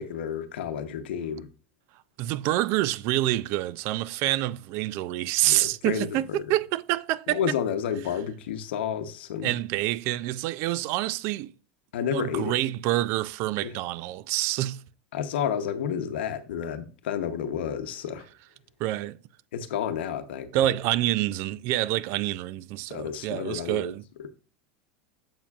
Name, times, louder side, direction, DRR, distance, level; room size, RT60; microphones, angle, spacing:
voice 1, 0.0-1.5 5.4-6.5 7.3-9.5 11.9-12.6 13.6-13.7 15.1-18.3 19.5-20.5 22.9-23.9, left 8 dB, 90° left, 0.8 m, -31 dB
voice 2, 2.2-7.4 9.4-11.5 12.1-14.8 18.8-19.2 20.5-24.0, right 15 dB, 50° right, 0.3 m, -27 dB
7.3 x 7.1 x 2.4 m
supercardioid pair, 145°, 6 cm